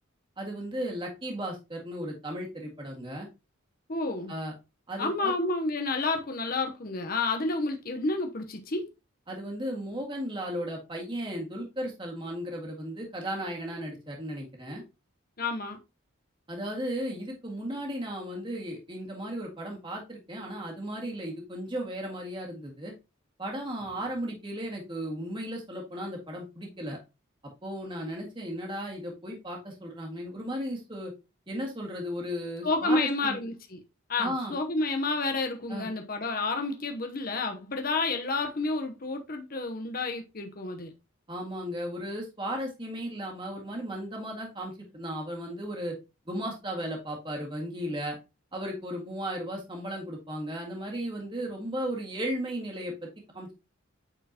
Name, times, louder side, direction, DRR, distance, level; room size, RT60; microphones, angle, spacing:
voice 1, 0.4-3.3 4.3-4.5 4.9-5.3 9.3-14.8 16.5-22.9 23.4-27.0 27.6-31.1 31.5-33.4 34.2-34.6 35.7-35.9 41.3-45.9 46.3-48.2 48.5-53.5, equal, 25° right, 1.8 m, -35 dB
voice 2, 3.9-4.3 5.0-8.9 15.4-15.8 32.6-33.8 34.1-40.9, left 3 dB, 45° left, 0.8 m, -30 dB
8.9 x 4.5 x 2.8 m
head